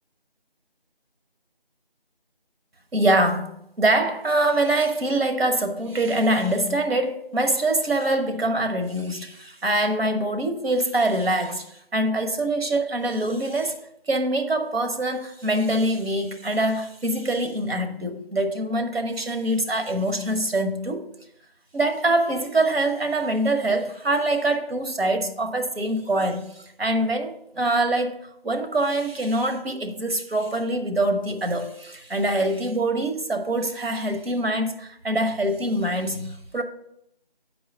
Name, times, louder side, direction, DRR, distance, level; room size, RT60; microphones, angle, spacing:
voice 1, 2.9-11.7 11.9-13.8 14.1-21.0 21.7-26.5 26.8-28.2 28.4-36.6, right 1 dB, 75° right, 1.2 m, -24 dB
7.2 x 4.8 x 5.2 m
figure-of-eight pair, 175°, 30 cm